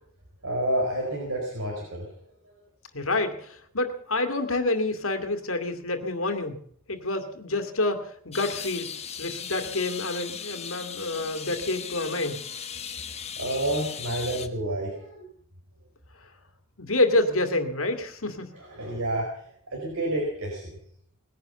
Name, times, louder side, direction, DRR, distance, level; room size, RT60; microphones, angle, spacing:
voice 1, 0.4-2.1 13.4-15.3 18.5-19.3 19.7-20.7, right 1 dB, 75° right, -1 dB, 4.6 m, -29 dB
voice 2, 2.9-6.6 6.9-8.9 9.2-12.4 16.8-18.5, left 2 dB, 65° left, 7 dB, 2.3 m, -28 dB
sound 1, 8.3-14.5, left 7 dB, 30° left, 1.3 m, -37 dB
20.0 x 10.5 x 7.0 m, 0.64 s
head